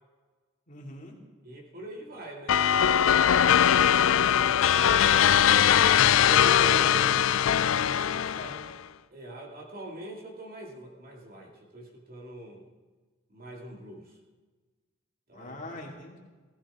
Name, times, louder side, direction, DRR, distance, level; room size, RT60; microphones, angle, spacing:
voice 1, 0.7-1.2 6.2-7.0 7.8-8.6 15.3-16.2, left 1 dB, 40° left, -1 dB, 2.4 m, -40 dB
voice 2, 1.4-3.2 3.7-5.5 6.1-7.2 8.1-8.5 9.1-12.7 13.3-14.2 15.3-15.9, right 1 dB, 45° right, 0 dB, 2.2 m, -43 dB
sound 1, 2.5-8.7, left 9 dB, 90° left, 0.4 m, -21 dB
17.5 x 14.5 x 3.6 m, 1.3 s
head